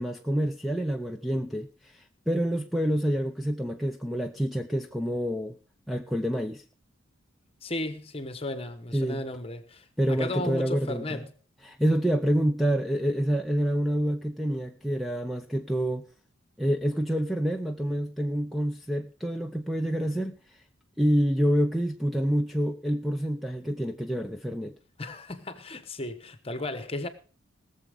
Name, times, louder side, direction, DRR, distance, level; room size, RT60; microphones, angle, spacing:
voice 1, 0.0-5.6 5.9-6.6 8.9-9.2 10.0-11.2 11.6-16.1 16.6-20.4 21.0-24.7, equal, ahead, 0.5 m, -27 dB
voice 2, 7.6-11.3 25.0-27.1, left 2 dB, 25° left, 1.1 m, -35 dB
19.5 x 7.2 x 5.0 m
head